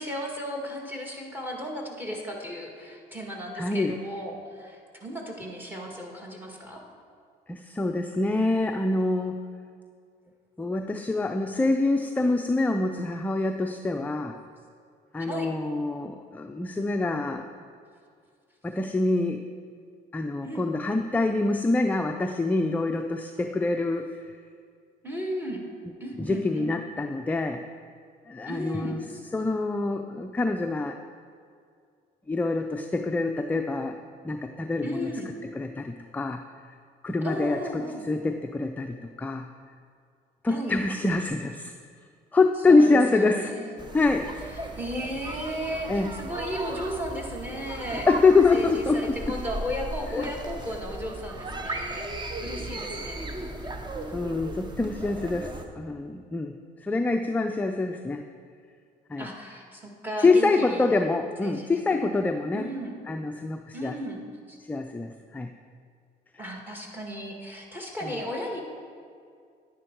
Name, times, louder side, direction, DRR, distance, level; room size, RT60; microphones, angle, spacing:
voice 1, 0.0-6.8 15.2-15.5 20.4-20.7 25.0-25.6 26.0-26.7 28.5-29.0 34.8-35.3 37.2-38.0 40.5-40.7 42.7-43.8 44.6-48.1 48.5-52.1 52.4-53.2 59.2-60.9 61.4-62.2 62.5-62.9 63.7-64.2 64.5-64.6 66.4-68.6, equal, 10° right, 0 dB, 1.8 m, -35 dB
voice 2, 3.6-4.0 7.5-9.4 10.6-14.4 15.1-17.5 18.6-19.4 20.1-24.1 26.2-27.6 28.3-29.0 29.3-31.0 32.3-34.0 34.2-35.1 35.5-36.4 37.0-39.5 40.4-41.7 42.3-43.5 43.9-44.3 45.9-46.1 48.1-49.4 50.1-50.2 54.1-56.5 56.8-58.2 59.1-59.3 60.2-62.7 63.1-64.0 64.7-65.5 68.0-68.2, left 3 dB, 10° left, 5 dB, 0.4 m, -25 dB
sound 1, 43.8-55.6, right 2 dB, 25° right, 0.9 m, -36 dB
10.0 x 10.0 x 4.6 m, 2.2 s
cardioid pair, 110°, 17 cm